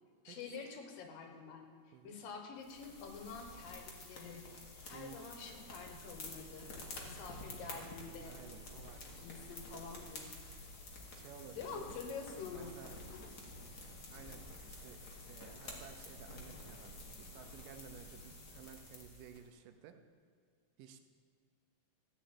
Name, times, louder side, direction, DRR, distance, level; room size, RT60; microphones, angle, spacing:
voice 1, 0.2-1.7 2.0-4.4 4.9-6.7 7.0-8.4 9.2-10.3 11.6-12.7 13.1-13.3, left 5 dB, 90° left, 4 dB, 3.1 m, -47 dB
sound 1, 2.6-19.4, left 2 dB, 40° left, 1.5 m, -50 dB
voice 2, 4.9-5.4 8.2-9.5 11.1-11.9 12.6-13.0 13.8-20.0 20.8-21.0, right 7 dB, 80° right, 7 dB, 2.4 m, -55 dB
14.0 x 5.1 x 8.6 m, 2.1 s
omnidirectional pair, 3.8 m